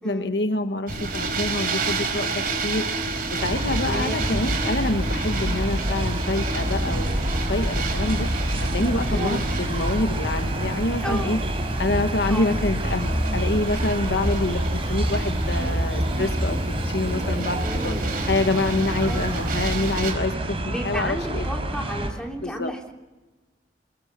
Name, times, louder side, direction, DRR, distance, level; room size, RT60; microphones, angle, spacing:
voice 1, 0.0-2.9 3.3-8.3 8.7-11.4 11.8-16.6 16.9-18.0 18.3-21.5 22.4-22.7, left 2 dB, 75° left, 8 dB, 1.4 m, -26 dB
sound 1, 0.9-20.1, right 3 dB, 55° right, 4.6 m, -31 dB
sound 2, 3.4-22.1, right 1 dB, 35° right, 4.3 m, -27 dB
voice 2, 3.8-4.2 9.1-9.4 11.0-11.5 12.2-12.5 17.6-18.2 19.1-19.3 20.6-22.9, equal, 5° left, 0 dB, 3.5 m, -33 dB
Piano, 6.6-17.5, left 1 dB, 25° left, 3.6 m, -38 dB
29.0 x 22.0 x 6.2 m, 1.2 s
head